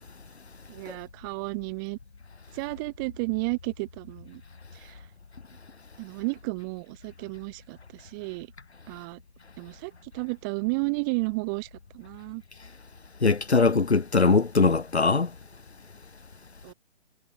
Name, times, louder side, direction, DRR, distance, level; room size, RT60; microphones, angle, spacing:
voice 1, 0.7-2.0 2.5-4.4 4.7-5.0 6.0-8.5 8.9-9.2 9.6-11.7 11.9-12.4 16.6-16.7, right 31 dB, 20° right, 2.8 m, -32 dB
voice 2, 13.2-15.3, left 4 dB, 65° left, 2.3 m, -21 dB
figure-of-eight pair, 140°, 35 cm